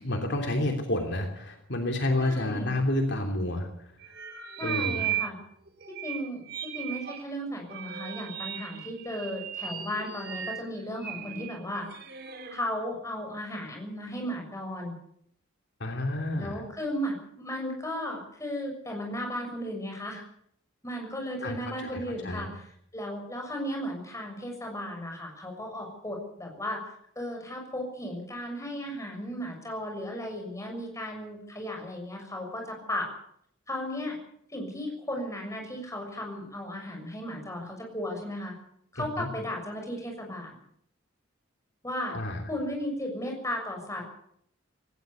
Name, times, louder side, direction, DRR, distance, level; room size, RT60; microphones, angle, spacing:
voice 1, 0.0-3.7 4.6-5.1 15.8-16.6 21.4-21.6 21.8-22.5 38.9-39.3 42.1-42.4, left 1 dB, 60° left, 4 dB, 3.1 m, -29 dB
voice 2, 2.2-2.7 4.6-5.4 5.9-11.9 12.5-14.9 16.3-20.2 20.8-22.6 22.9-26.8 27.1-33.1 33.7-34.1 34.5-38.5 38.9-40.6 41.8-42.2 42.5-44.1, equal, 15° left, 2 dB, 6.7 m, -35 dB
sound 1, 4.0-5.4 5.7-7.2 7.7-12.6, right 10 dB, 50° right, 3.1 m, -36 dB
18.5 x 18.0 x 8.4 m, 0.69 s
head